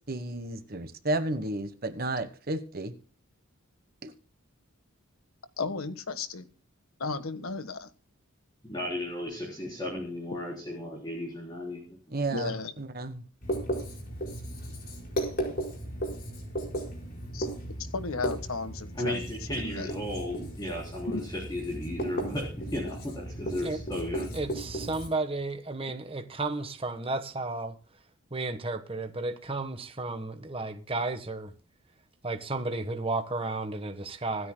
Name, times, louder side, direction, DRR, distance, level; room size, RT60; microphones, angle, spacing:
voice 1, 0.1-2.9 4.0-4.1 12.1-12.5 12.8-13.2, right 2 dB, 45° right, 1.2 m, -32 dB
voice 2, 5.6-6.5 7.0-7.9 12.3-12.7 17.3-17.5 17.8-19.3 19.5-19.9, left 4 dB, 85° left, 1.5 m, -34 dB
voice 3, 8.6-11.8 19.0-24.4, left 1 dB, 20° left, 3.5 m, -35 dB
Writing, 13.4-25.1, right 1 dB, 45° left, 4.9 m, -36 dB
voice 4, 24.3-27.7 28.3-31.5 32.2-34.5, right 3 dB, 25° right, 1.2 m, -33 dB
26.5 x 9.5 x 2.2 m
head